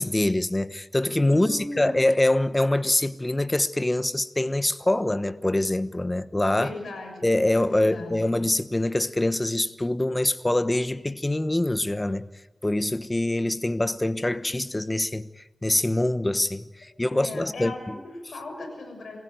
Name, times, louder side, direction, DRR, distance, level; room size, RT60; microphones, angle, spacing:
voice 1, 0.0-6.7 7.2-12.2 12.6-18.0, left 1 dB, 20° left, 1.1 m, -24 dB
voice 2, 1.3-2.0 6.6-7.3 7.7-8.3 17.1-19.2, left 2 dB, 90° left, 6.6 m, -38 dB
28.0 x 16.0 x 9.3 m
cardioid pair, 60°, 0 cm